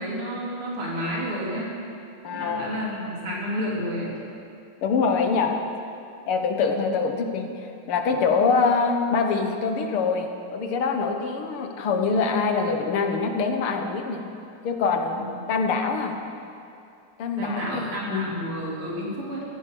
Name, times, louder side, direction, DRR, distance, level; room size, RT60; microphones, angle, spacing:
voice 1, 0.0-1.7 2.3-4.2 15.1-15.3 17.4-19.4, equal, 90° right, -4 dB, 4.3 m, -30 dB
voice 2, 2.2-2.7 4.8-5.6 6.3-14.2 14.6-15.2 15.5-16.2 17.2-18.3, left 4 dB, 80° left, 5 dB, 2.2 m, -24 dB
15.5 x 15.0 x 6.1 m, 2.6 s
omnidirectional pair, 2.4 m